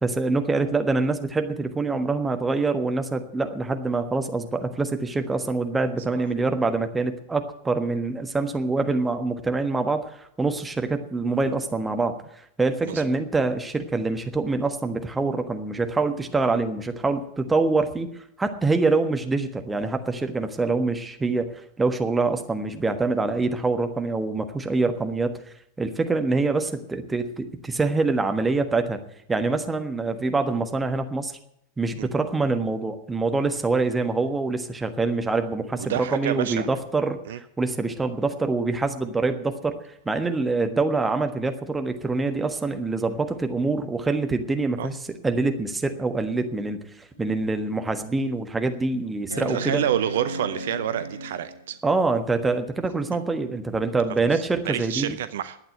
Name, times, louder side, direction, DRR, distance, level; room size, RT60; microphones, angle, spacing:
voice 1, 0.0-12.2 12.6-18.1 18.4-25.3 25.8-29.0 29.3-31.3 31.8-45.0 45.2-46.8 47.2-49.8 51.8-55.2, right 3 dB, 10° right, 7 dB, 1.4 m, -25 dB
voice 2, 35.7-36.7 37.3-37.4 44.8-44.9 49.5-51.8 54.2-55.6, right 11 dB, 60° right, 12 dB, 0.7 m, -28 dB
sound 1, 47.2-47.3 47.8-47.9 49.3-51.8 53.5-53.6, right 1 dB, 85° left, 1.1 m, -35 dB
12.0 x 8.9 x 8.9 m, 0.76 s
figure-of-eight pair, 90°, 0 cm